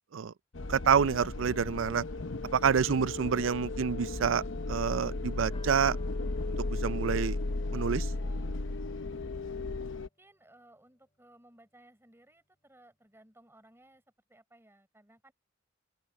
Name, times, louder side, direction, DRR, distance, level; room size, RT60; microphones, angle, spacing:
sound 1, 0.5-10.1, left 2 dB, 75° left, 1.0 m, -35 dB
voice 1, 0.7-2.0 2.5-6.0 6.7-7.4 7.7-8.1, right 7 dB, 80° right, 0.5 m, -28 dB
sound 2, 5.5-11.1 11.3-11.4 11.7-11.8, left 3 dB, 30° left, 5.1 m, -62 dB
voice 2, 9.9-14.0 14.3-15.3, right 1 dB, 15° right, 6.0 m, -60 dB
open air
head